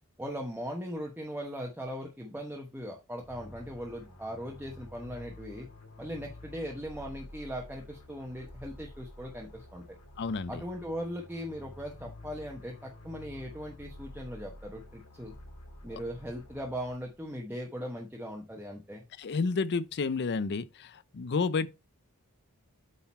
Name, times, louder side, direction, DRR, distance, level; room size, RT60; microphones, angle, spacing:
voice 1, 0.2-5.7 6.0-9.8 10.5-15.3 15.8-19.0, equal, 10° right, 1.1 m, -39 dB
sound 1, 3.2-17.4, left 1 dB, 85° left, 3.5 m, -50 dB
voice 2, 10.2-10.6 15.9-16.0 19.2-21.7, left 4 dB, 50° left, 0.5 m, -30 dB
8.4 x 4.0 x 4.3 m
head